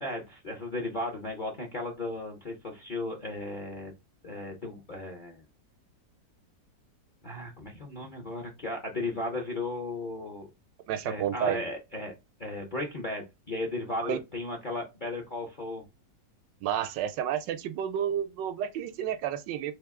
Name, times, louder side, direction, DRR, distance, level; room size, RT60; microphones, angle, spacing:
voice 1, 0.0-3.9 4.2-5.4 7.2-10.5 11.0-12.1 12.4-15.8, left 2 dB, 45° left, 0.6 m, -35 dB
voice 2, 10.9-11.6 14.0-14.2 16.6-19.7, right 9 dB, 80° right, 1.2 m, -30 dB
3.5 x 3.2 x 3.5 m
omnidirectional pair, 2.0 m